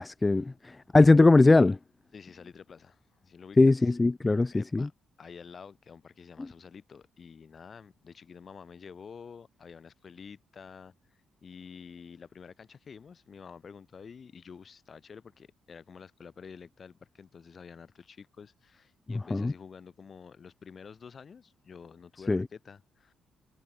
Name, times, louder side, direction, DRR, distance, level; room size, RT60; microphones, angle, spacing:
voice 1, 0.0-1.8 3.6-4.9 19.3-19.5 22.3-22.4, left 3 dB, 20° left, 0.7 m, -21 dB
voice 2, 2.1-4.0 4.5-4.9 5.2-10.9 11.4-23.1, left 6 dB, 45° left, 4.3 m, -49 dB
cardioid pair, 90°, 0 cm